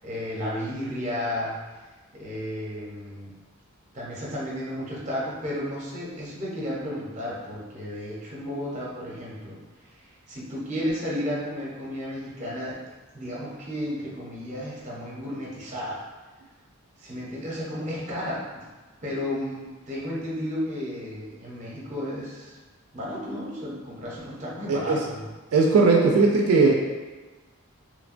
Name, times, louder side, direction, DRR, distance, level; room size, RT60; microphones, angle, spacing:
voice 1, 0.0-1.5 2.2-3.3 3.9-9.6 10.3-12.7 13.1-16.0 17.0-18.6 19.0-19.6 19.9-22.6 22.9-25.3, left 1 dB, 30° right, -6 dB, 0.6 m, -33 dB
voice 2, 24.7-25.0 25.5-26.7, right 4 dB, 80° right, -1 dB, 0.3 m, -18 dB
3.0 x 2.1 x 2.5 m, 1.3 s
head